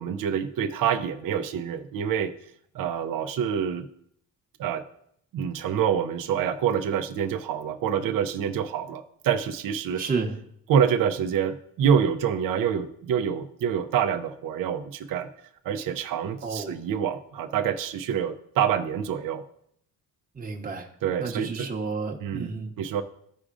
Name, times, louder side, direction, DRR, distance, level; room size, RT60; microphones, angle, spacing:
voice 1, 0.0-2.3 2.7-3.9 4.6-4.8 5.3-10.0 10.7-15.3 15.6-19.4 21.0-21.7 22.2-23.0, right 8 dB, 65° right, 7 dB, 0.6 m, -26 dB
voice 2, 10.0-10.3 16.4-16.8 20.3-20.9 21.2-22.7, right 4 dB, 25° right, 1 dB, 1.0 m, -31 dB
14.0 x 4.9 x 2.5 m, 0.69 s
cardioid pair, 110°, 35 cm